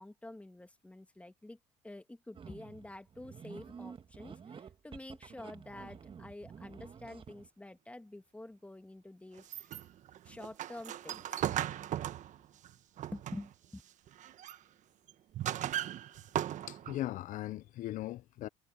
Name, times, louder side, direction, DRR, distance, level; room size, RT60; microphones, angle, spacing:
voice 1, 0.0-1.6 1.8-9.7 10.2-11.2 11.7-11.8 13.1-13.8, left 1 dB, 10° left, 2.2 m, -48 dB
sound 1, 2.3-7.5, right 6 dB, 35° right, 1.8 m, -50 dB
sound 2, 9.4-13.6 14.1-14.6 15.1-17.1, right 11 dB, 55° right, 1.4 m, -38 dB
voice 2, 16.7-18.5, left 14 dB, 60° left, 0.9 m, -39 dB
supercardioid pair, 80°, 15 cm